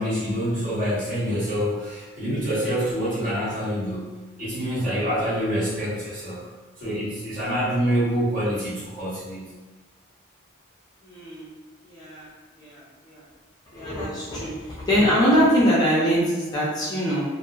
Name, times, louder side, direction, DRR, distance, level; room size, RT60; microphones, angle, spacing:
voice 1, 0.0-6.5 6.8-9.5, equal, 40° right, -11 dB, 1.2 m, -26 dB
voice 2, 11.0-11.5 11.8-12.3 12.6-13.2 13.7-17.2, equal, 20° left, -9 dB, 0.5 m, -23 dB
2.7 x 2.5 x 2.3 m, 1.2 s
head